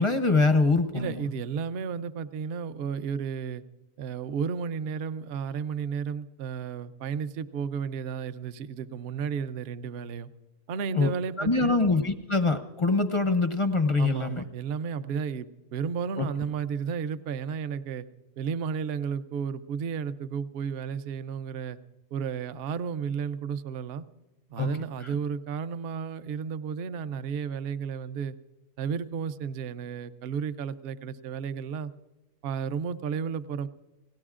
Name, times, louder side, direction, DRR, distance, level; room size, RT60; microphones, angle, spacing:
voice 1, 0.0-1.3 10.9-11.1 11.4-14.4 16.2-16.3 24.6-24.7 25.0-25.1, left 3 dB, 35° left, 8 dB, 0.5 m, -24 dB
voice 2, 0.9-3.6 4.0-10.3 10.7-11.9 14.0-18.1 18.4-21.8 22.1-24.0 24.5-28.4 28.8-31.9 32.4-33.7, right 6 dB, 60° right, 13 dB, 0.7 m, -33 dB
29.5 x 17.5 x 2.5 m, 1.1 s
omnidirectional pair, 1.6 m